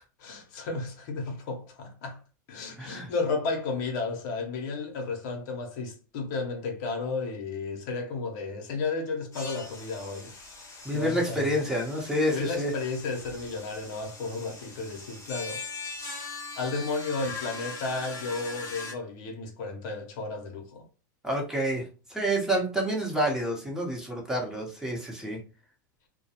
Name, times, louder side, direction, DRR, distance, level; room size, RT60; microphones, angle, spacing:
voice 1, 0.2-2.2 2.5-10.3 10.7-11.5 12.3-15.7 16.2-20.9, left 3 dB, 65° left, 0.7 m, -33 dB
voice 2, 2.8-3.1 10.8-12.7 21.2-21.8 22.1-25.4, equal, 5° right, 0.8 m, -28 dB
sound 1, 9.3-18.9, left 4 dB, 25° left, 0.9 m, -41 dB
2.2 x 2.1 x 2.8 m
hypercardioid pair, 110°, 11 cm